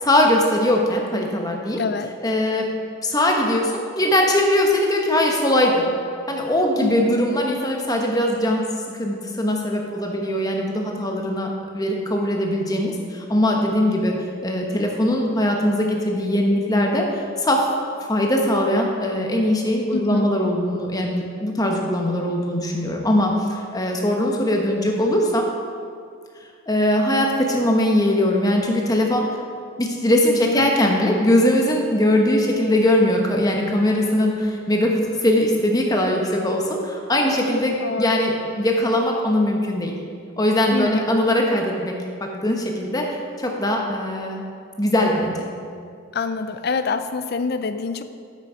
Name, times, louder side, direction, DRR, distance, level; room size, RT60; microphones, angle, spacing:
voice 1, 0.0-1.8 2.2-2.7 3.0-5.9 6.3-14.1 14.4-17.7 18.1-25.5 26.7-29.3 29.8-40.0 40.4-41.9 42.2-44.4 44.8-45.5, left 1 dB, 15° left, 1 dB, 0.9 m, -21 dB
voice 2, 1.8-2.1 6.8-7.1 19.9-20.3 30.4-30.7 37.8-38.3 40.7-41.1 46.1-48.0, left 4 dB, 50° left, 10 dB, 0.4 m, -26 dB
9.1 x 7.7 x 4.9 m, 2.2 s
head